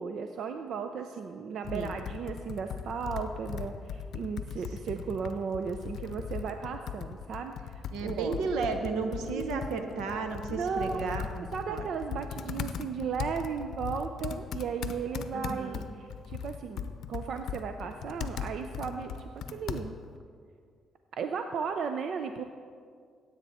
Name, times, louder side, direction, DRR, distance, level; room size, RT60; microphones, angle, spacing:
voice 1, 0.0-8.5 9.3-9.9 10.5-11.1 11.5-19.9 21.1-22.4, right 6 dB, 65° right, 6 dB, 0.5 m, -35 dB
Computer keyboard, 1.6-20.2, left 7 dB, 70° left, 0.6 m, -39 dB
voice 2, 7.9-11.9 15.3-15.8, right 4 dB, 90° right, 6 dB, 1.1 m, -33 dB
16.5 x 8.2 x 4.2 m, 2.1 s
cardioid pair, 90°, 0 cm